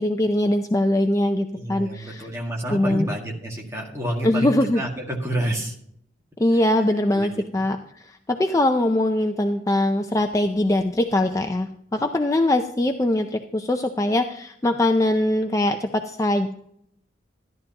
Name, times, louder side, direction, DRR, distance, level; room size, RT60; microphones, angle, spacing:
voice 1, 0.0-2.3 2.7-3.1 4.2-4.8 6.4-16.5, left 1 dB, 15° left, 5 dB, 0.4 m, -22 dB
voice 2, 1.5-5.7 7.1-7.4, right 1 dB, 15° right, -2 dB, 2.0 m, -29 dB
14.0 x 11.0 x 2.9 m, 0.71 s
head